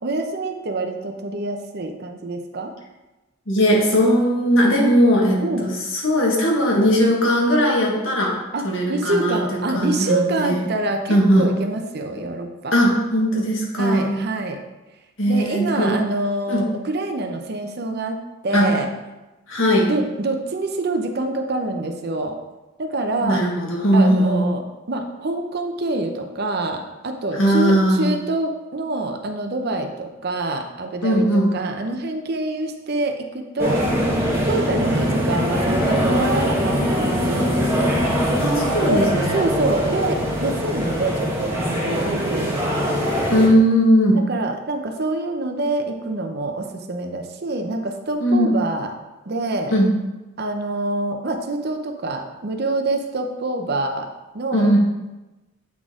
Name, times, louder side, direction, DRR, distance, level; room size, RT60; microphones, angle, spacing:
voice 1, 0.0-2.7 5.4-5.7 8.5-12.8 13.8-14.6 15.3-18.2 18.4-18.9 19.8-22.4 22.8-23.4 23.9-33.8 34.4-38.0 38.8-42.8 44.1-48.9 49.3-49.7 50.4-54.1 54.3-54.8, right 2 dB, 55° right, 5 dB, 0.7 m, -26 dB
voice 2, 3.5-8.4 8.6-10.7 11.1-11.5 12.7-14.2 15.2-16.0 16.5-16.7 18.5-18.8 19.5-19.9 23.2-24.4 27.4-28.1 31.0-31.5 38.4-39.4 43.3-44.2 48.2-48.6 49.7-49.9 54.5-54.8, equal, 85° left, -2 dB, 1.6 m, -18 dB
sound 1, 33.6-43.5, equal, 10° right, 1.3 m, -22 dB
8.4 x 4.1 x 3.7 m, 1.1 s
head